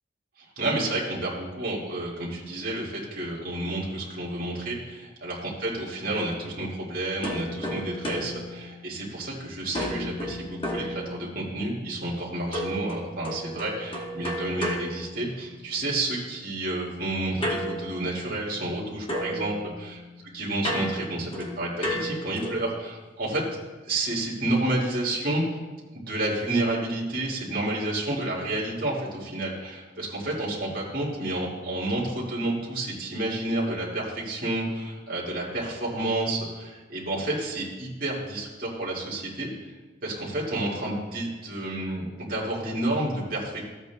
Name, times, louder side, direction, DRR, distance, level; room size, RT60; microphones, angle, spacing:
voice 1, 0.6-19.5 20.3-23.4 23.8-25.6 25.9-39.7 40.0-43.6, right 1 dB, 45° right, -5 dB, 2.0 m, -30 dB
sound 1, 7.2-9.3 9.7-11.6 12.5-15.8 17.4-18.8 19.1-22.8, equal, 25° left, 1.1 m, -33 dB
14.0 x 8.0 x 2.2 m, 1.2 s
head